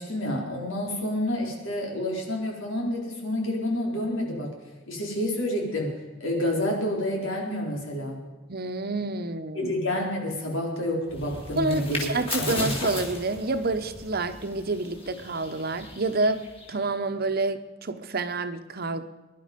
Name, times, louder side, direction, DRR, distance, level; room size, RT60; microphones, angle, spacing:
voice 1, 0.0-4.5 4.9-5.9 6.2-8.2 9.5-12.1 12.4-12.7, left 1 dB, 90° left, 4.3 m, -29 dB
voice 2, 8.5-9.8 11.6-19.0, right 3 dB, 50° right, 1.0 m, -28 dB
sound 1, 11.1-16.8, left 2 dB, 30° left, 3.5 m, -36 dB
22.5 x 11.5 x 5.3 m
head